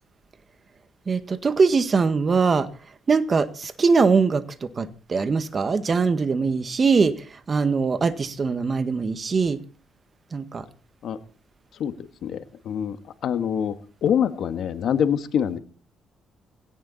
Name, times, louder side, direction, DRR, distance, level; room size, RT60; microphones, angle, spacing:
voice 1, 1.1-2.7 3.1-9.6 10.3-10.7, right 4 dB, 40° right, 11 dB, 1.7 m, -22 dB
voice 2, 12.7-13.0 13.2-13.7 14.0-15.6, left 8 dB, 70° left, 9 dB, 1.8 m, -24 dB
17.5 x 17.5 x 4.3 m, 0.39 s
cardioid pair, 90°, 0 cm